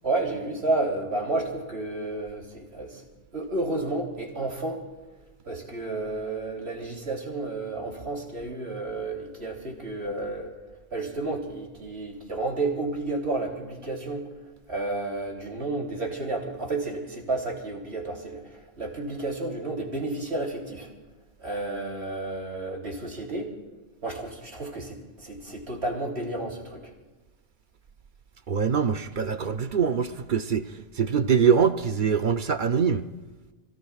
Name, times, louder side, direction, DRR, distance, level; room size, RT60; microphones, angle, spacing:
voice 1, 0.0-3.0 3.3-4.8 5.4-10.5 10.9-14.3 14.7-20.9 21.4-23.5 24.0-26.8, right 2 dB, 70° right, 3.4 m, -31 dB
voice 2, 28.5-30.7 31.0-33.1, right 6 dB, 50° right, 0.8 m, -23 dB
30.0 x 16.5 x 2.4 m
omnidirectional pair, 1.2 m